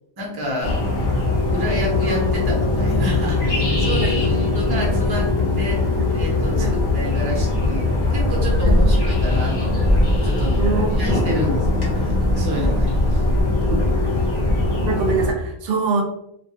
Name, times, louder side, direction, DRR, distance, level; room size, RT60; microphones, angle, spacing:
voice 1, 0.2-0.8 1.5-9.9 10.2-10.6 11.0-13.2, equal, 30° right, -2 dB, 0.5 m, -29 dB
sound 1, 0.6-15.3, left 2 dB, 45° left, 0.9 m, -20 dB
voice 2, 8.6-9.0 10.6-11.1 13.7-13.8 14.7-16.0, right 4 dB, 75° right, 2 dB, 0.8 m, -24 dB
2.3 x 2.2 x 2.7 m, 0.75 s
omnidirectional pair, 1.0 m